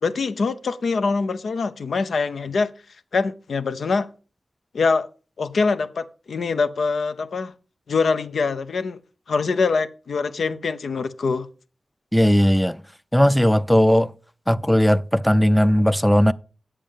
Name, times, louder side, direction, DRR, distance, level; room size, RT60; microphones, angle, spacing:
voice 1, 0.0-2.7 3.1-4.1 4.7-5.1 5.4-7.5 7.9-9.0 9.3-11.5, left 4 dB, 85° left, 0.7 m, -24 dB
voice 2, 12.1-12.8 13.1-14.1 14.5-16.3, equal, 5° left, 0.4 m, -17 dB
8.6 x 7.5 x 5.1 m
wide cardioid pair, 90°, 0 cm